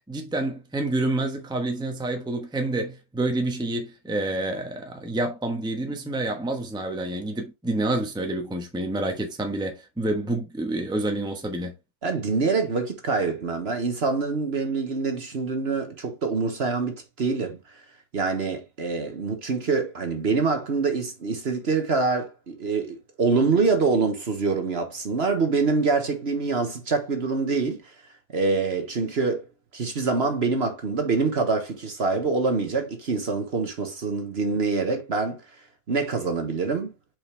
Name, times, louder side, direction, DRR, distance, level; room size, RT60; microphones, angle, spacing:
voice 1, 0.1-11.7, right 2 dB, 5° right, 1.0 m, -28 dB
voice 2, 12.0-17.6 18.1-27.8 28.3-29.5 29.7-35.4 35.9-36.9, right 4 dB, 50° right, 1.3 m, -25 dB
6.1 x 5.1 x 3.2 m
omnidirectional pair, 1.5 m